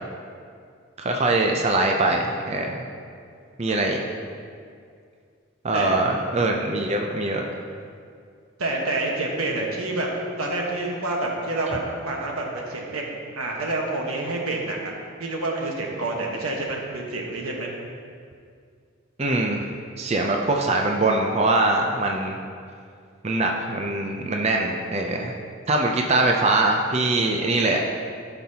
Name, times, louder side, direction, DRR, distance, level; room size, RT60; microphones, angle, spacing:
voice 1, 1.0-2.8 3.6-4.0 5.6-7.5 19.2-19.6 20.0-22.4 23.2-25.3 25.7-27.8, right 2 dB, 30° right, 1 dB, 0.5 m, -22 dB
voice 2, 8.6-10.1 10.4-13.0 13.3-14.9 15.2-17.7, right 2 dB, 90° right, -1 dB, 1.3 m, -28 dB
13.0 x 5.8 x 2.9 m, 2.2 s
head